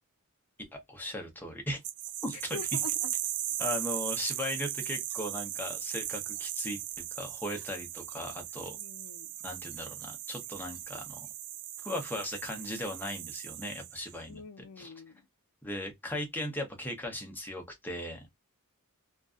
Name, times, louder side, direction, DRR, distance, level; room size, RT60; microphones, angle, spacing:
voice 1, 0.7-1.8 2.2-2.6 3.6-8.8 9.4-11.3 11.8-14.4 14.8-14.9 15.6-18.3, left 1 dB, 10° left, 0.7 m, -37 dB
sound 1, 1.8-14.2, right 13 dB, 80° right, 0.4 m, -37 dB
voice 2, 2.3-3.1 8.6-9.3 14.3-15.2, left 5 dB, 85° left, 0.4 m, -45 dB
2.6 x 2.4 x 2.3 m
head